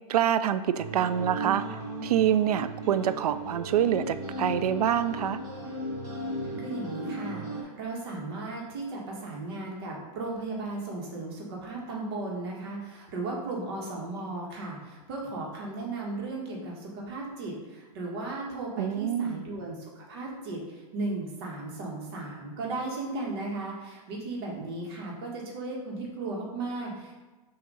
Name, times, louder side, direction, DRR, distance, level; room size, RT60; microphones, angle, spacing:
voice 1, 0.1-1.6 2.0-5.4 18.8-19.4, right 10 dB, 75° right, 12 dB, 0.4 m, -26 dB
sound 1, 0.8-7.6, right 1 dB, 20° right, 1.0 m, -36 dB
voice 2, 6.6-27.1, right 2 dB, 40° right, -2 dB, 1.5 m, -36 dB
6.2 x 2.9 x 5.4 m, 1.2 s
hypercardioid pair, 170°, 20 cm